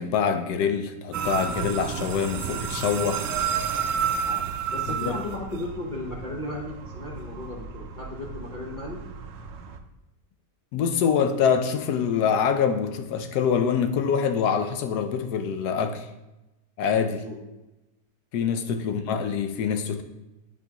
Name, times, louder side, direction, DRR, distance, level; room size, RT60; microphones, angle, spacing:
voice 1, 0.0-3.3 5.0-5.2 10.7-16.1 16.8-17.2 18.3-20.0, left 7 dB, 75° left, 8 dB, 1.1 m, -25 dB
sound 1, 1.1-9.8, right 7 dB, 70° right, 0.7 m, -31 dB
voice 2, 4.2-9.0 17.1-17.4, left 2 dB, 40° left, -4 dB, 0.7 m, -36 dB
8.1 x 4.6 x 2.9 m, 0.96 s
omnidirectional pair, 1.8 m